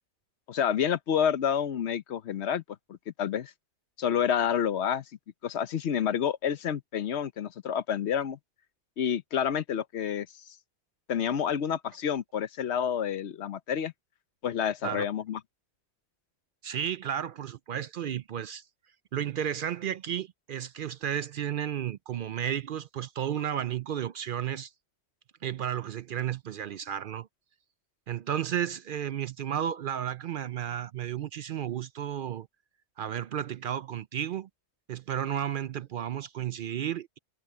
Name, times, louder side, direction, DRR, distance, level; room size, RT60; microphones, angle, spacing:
voice 1, 0.5-2.6 2.9-3.5 4.0-5.0 5.4-8.4 9.0-10.6 11.1-13.9 14.4-15.4, left 8 dB, 75° left, 1.1 m, -29 dB
voice 2, 16.6-18.6 19.1-24.7 25.4-27.3 28.1-32.5 33.0-34.5 34.9-37.2, right 10 dB, 60° right, 0.6 m, -33 dB
omnidirectional pair, 1.1 m